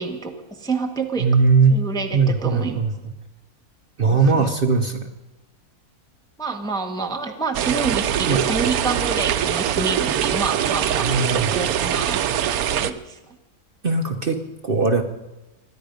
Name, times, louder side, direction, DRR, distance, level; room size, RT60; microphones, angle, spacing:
voice 1, 0.0-1.3 1.7-2.8 4.1-4.5 6.4-11.1 11.3-12.2 12.7-13.4, right 4 dB, 5° left, 3 dB, 0.9 m, -28 dB
voice 2, 1.2-1.8 2.1-3.1 4.0-5.1 8.3-8.4 11.0-11.5 13.8-15.0, right 4 dB, 45° right, 5 dB, 1.0 m, -19 dB
sound 1, 7.5-12.9, right 10 dB, 80° right, 1.1 m, -23 dB
24.0 x 10.5 x 5.2 m, 1.0 s
omnidirectional pair, 1.6 m